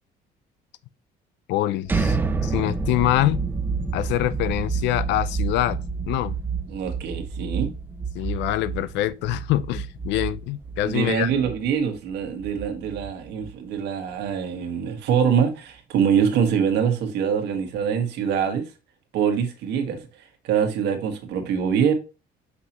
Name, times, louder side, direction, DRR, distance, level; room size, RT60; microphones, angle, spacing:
voice 1, 1.5-3.4 3.9-5.8 6.1-6.4 8.1-11.3, left 15 dB, 80° left, 0.5 m, -25 dB
sound 1, 1.8-13.7, right 4 dB, 10° right, 0.4 m, -29 dB
voice 2, 6.7-7.7 10.8-18.7 19.1-20.0 20.4-21.9, right 7 dB, 70° right, 1.6 m, -24 dB
6.0 x 5.7 x 2.9 m
cardioid pair, 170°, 18 cm